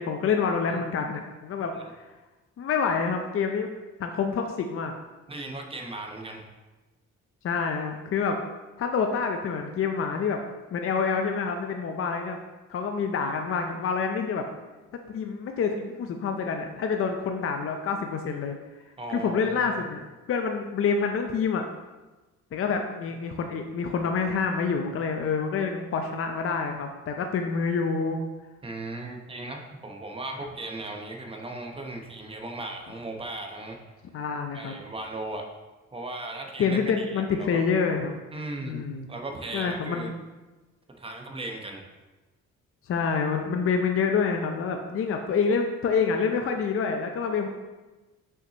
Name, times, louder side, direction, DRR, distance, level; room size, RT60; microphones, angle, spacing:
voice 1, 0.0-2.1 2.6-3.7 4.0-4.9 7.4-8.4 8.8-10.4 10.7-12.4 12.7-14.5 15.1-18.6 19.1-20.0 20.3-21.6 22.5-28.2 34.1-34.8 36.6-38.1 38.6-39.1 39.5-40.1 42.9-47.5, left 5 dB, 45° left, 4 dB, 0.6 m, -27 dB
voice 2, 5.3-6.4 19.0-19.7 28.6-33.8 34.5-35.5 35.9-37.6 38.3-38.8 39.1-40.1 41.0-41.8, right 2 dB, 20° right, 2 dB, 0.9 m, -37 dB
6.0 x 5.7 x 2.9 m, 1.2 s
cardioid pair, 90°, 30 cm